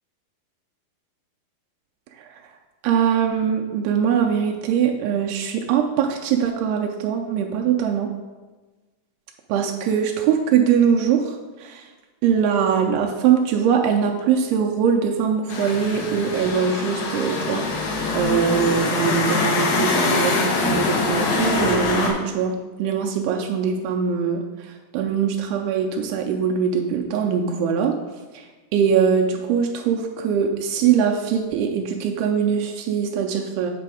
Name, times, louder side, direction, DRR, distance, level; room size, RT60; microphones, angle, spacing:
voice 1, 2.8-8.1 9.5-11.8 12.2-28.0 28.3-28.5 28.7-33.7, right 7 dB, 85° right, 1 dB, 2.5 m, -22 dB
sound 1, 15.5-22.1, left 3 dB, 90° left, 3.3 m, -23 dB
8.4 x 5.0 x 4.8 m, 1.3 s
omnidirectional pair, 4.7 m